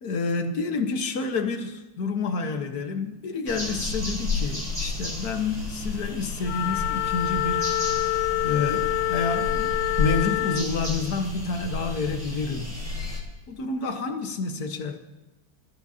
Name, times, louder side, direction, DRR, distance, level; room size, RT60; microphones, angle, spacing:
voice 1, 0.0-7.9 8.4-12.8 13.5-15.0, left 4 dB, 50° left, 1.4 m, -29 dB
taman negara incoming motorboat, 3.5-13.2, left 2 dB, 30° right, 4.2 m, -32 dB
Wind instrument woodwind instrument, 6.4-10.7, left 15 dB, 85° left, 1.5 m, -26 dB
26.0 x 13.5 x 2.8 m
omnidirectional pair, 2.4 m